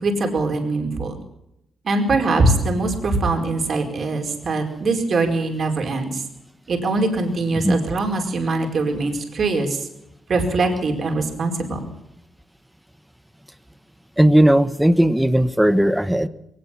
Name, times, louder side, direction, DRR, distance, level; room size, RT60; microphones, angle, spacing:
voice 1, 0.0-1.2 1.8-6.2 6.7-9.8 10.3-11.9, right 3 dB, 45° right, 3 dB, 4.7 m, -22 dB
voice 2, 14.2-16.3, right 1 dB, 5° right, 14 dB, 1.0 m, -16 dB
22.0 x 19.0 x 7.2 m, 0.81 s
cardioid pair, 150°, 0 cm